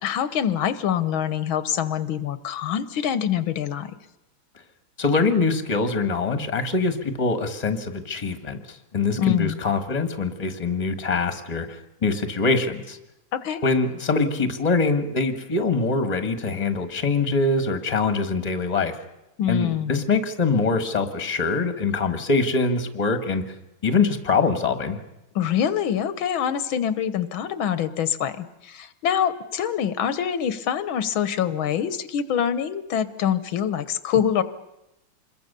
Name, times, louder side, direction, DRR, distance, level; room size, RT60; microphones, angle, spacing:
voice 1, 0.0-4.0 9.2-9.6 13.3-13.6 19.4-20.0 25.4-34.4, left 9 dB, 85° left, 14 dB, 1.8 m, -25 dB
voice 2, 5.0-8.6 8.9-13.0 13.6-19.0 19.5-23.5 23.8-25.0, left 4 dB, 20° left, 10 dB, 1.5 m, -23 dB
27.0 x 22.0 x 6.8 m, 0.91 s
omnidirectional pair, 2.2 m